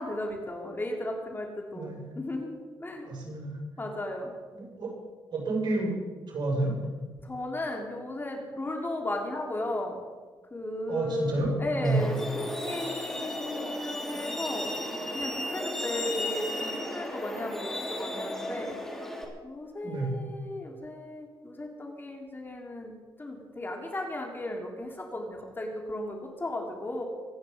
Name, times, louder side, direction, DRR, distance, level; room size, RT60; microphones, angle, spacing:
voice 1, 0.0-3.1 3.8-4.3 7.2-10.0 10.5-14.7 15.1-18.8 19.4-22.9 23.2-27.0, left 1 dB, 25° left, 1 dB, 3.5 m, -35 dB
voice 2, 1.7-2.0 3.1-3.6 4.5-4.9 5.3-5.9 6.3-6.7 10.9-12.0 19.8-20.1, right 2 dB, 60° right, -1 dB, 6.0 m, -29 dB
Truck, 11.8-19.2, left 1 dB, 5° left, 3.5 m, -35 dB
24.5 x 9.8 x 5.3 m, 1.4 s
cardioid pair, 85°, 8 cm